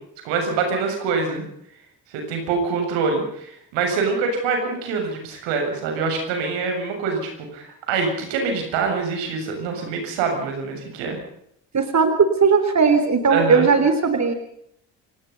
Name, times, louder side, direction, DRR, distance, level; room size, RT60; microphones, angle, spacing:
voice 1, 0.2-1.5 2.1-11.2 13.3-13.7, right 4 dB, 85° right, 4 dB, 7.3 m, -25 dB
voice 2, 11.7-14.3, right 5 dB, 40° right, 8 dB, 3.9 m, -17 dB
30.0 x 17.5 x 5.6 m, 0.72 s
supercardioid pair, 65°, 43 cm